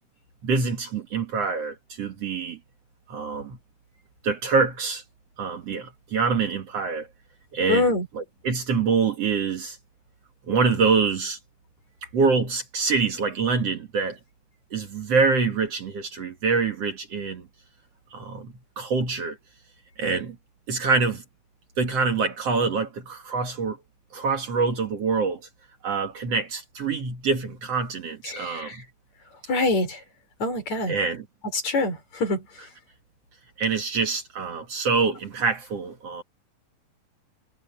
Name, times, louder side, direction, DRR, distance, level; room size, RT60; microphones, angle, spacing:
voice 1, 0.4-2.6 3.1-3.6 4.2-5.0 5.4-7.1 7.5-9.8 10.5-11.4 12.1-14.2 14.7-17.5 18.1-19.4 20.0-20.4 20.7-21.2 21.8-23.8 24.1-25.4 25.8-28.8 30.9-31.3 33.6-36.2, right 4 dB, 55° right, 2.6 m, -25 dB
voice 2, 7.7-8.1 28.2-28.8 29.5-30.0 30.4-30.9 31.5-32.4, left 3 dB, 55° left, 6.1 m, -25 dB
omnidirectional pair, 3.8 m